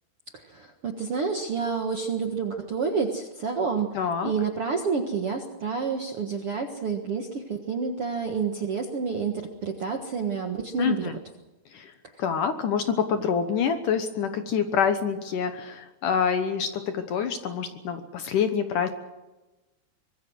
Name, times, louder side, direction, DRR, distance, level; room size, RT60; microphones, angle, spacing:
voice 1, 0.5-3.9 4.2-11.1, right 5 dB, 55° right, 4 dB, 1.6 m, -29 dB
voice 2, 3.9-4.3 10.8-11.2 11.7-11.9 12.2-18.9, left 7 dB, 65° left, 8 dB, 2.3 m, -26 dB
25.0 x 21.5 x 6.3 m, 1.1 s
omnidirectional pair, 4.7 m